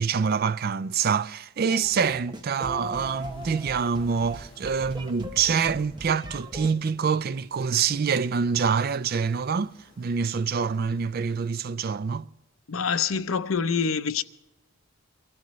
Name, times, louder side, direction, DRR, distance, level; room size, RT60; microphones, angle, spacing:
voice 1, 0.0-12.3, right 6 dB, 45° right, 0.4 m, -26 dB
sound 1, 1.7-6.7, equal, 20° right, 0.9 m, -40 dB
sound 2, 2.4-11.5, left 1 dB, 25° left, 5.2 m, -58 dB
voice 2, 12.7-14.2, left 6 dB, 75° left, 0.6 m, -26 dB
23.5 x 13.0 x 3.2 m
head